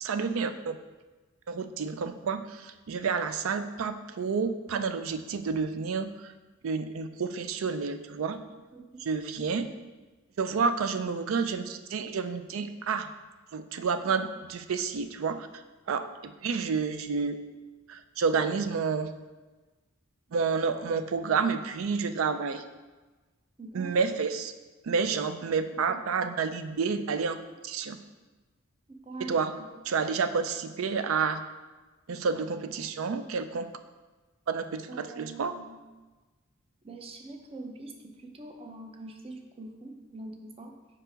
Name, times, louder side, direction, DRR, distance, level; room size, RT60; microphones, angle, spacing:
voice 1, 0.0-0.8 1.5-6.3 6.6-8.4 9.0-9.7 10.4-13.1 13.5-15.5 15.9-17.4 17.9-19.1 20.3-22.6 23.7-24.5 24.8-27.4 27.6-28.0 29.2-29.5 29.9-31.4 32.1-33.7 34.5-35.5, right 5 dB, 75° right, 10 dB, 0.4 m, -29 dB
voice 2, 8.7-9.1 14.0-14.3 23.6-24.2 25.9-26.0 28.9-29.7 34.9-35.8 36.8-40.8, right 2 dB, 30° right, 4 dB, 0.6 m, -44 dB
4.9 x 4.6 x 5.1 m, 1.2 s
head